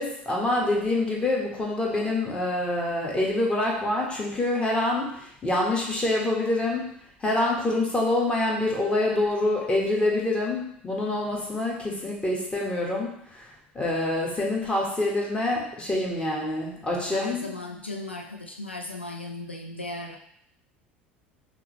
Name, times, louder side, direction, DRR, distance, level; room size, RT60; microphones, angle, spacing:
voice 1, 0.0-6.9 7.2-13.5 13.7-17.5, left 2 dB, 20° left, -2 dB, 1.4 m, -26 dB
voice 2, 17.1-20.2, left 2 dB, 90° left, 2 dB, 0.4 m, -36 dB
5.6 x 2.8 x 3.1 m, 0.69 s
figure-of-eight pair, 70°, 6 cm